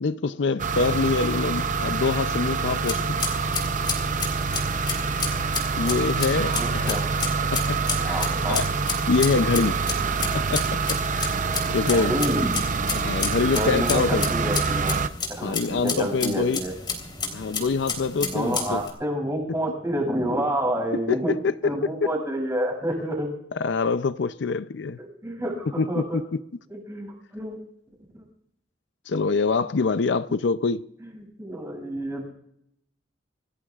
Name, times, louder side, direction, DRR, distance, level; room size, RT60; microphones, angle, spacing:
voice 1, 0.0-3.2 3.8-3.9 5.8-7.1 7.5-7.8 8.0-8.7 9.1-9.8 10.3-11.4 11.7-12.2 12.9-14.3 15.4-16.6 17.3-18.8 21.1-21.9 23.6-25.0 25.8-26.0 29.1-30.8, left 4 dB, 65° left, 0.5 m, -25 dB
sound 1, 0.6-15.1, right 4 dB, 40° right, 0.6 m, -26 dB
sound 2, 2.7-18.9, left 4 dB, 25° left, 3.4 m, -32 dB
voice 2, 6.3-7.0 8.0-8.6 11.8-12.8 13.5-15.0 15.4-16.7 18.2-21.3 21.6-23.3 25.0-26.2 26.7-27.6 28.1-28.2 31.0-32.3, right 1 dB, 15° right, 6.4 m, -29 dB
27.0 x 17.0 x 2.4 m
head